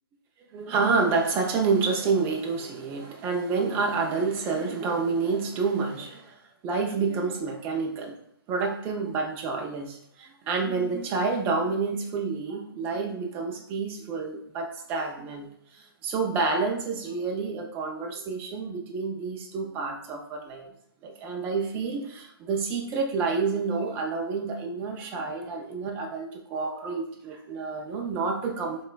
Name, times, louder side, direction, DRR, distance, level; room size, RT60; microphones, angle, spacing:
voice 1, 0.5-8.2 8.5-20.7 21.0-28.8, right 4 dB, 15° right, 1 dB, 0.3 m, -29 dB
3.6 x 2.2 x 2.2 m, 0.68 s
hypercardioid pair, 145°, 13 cm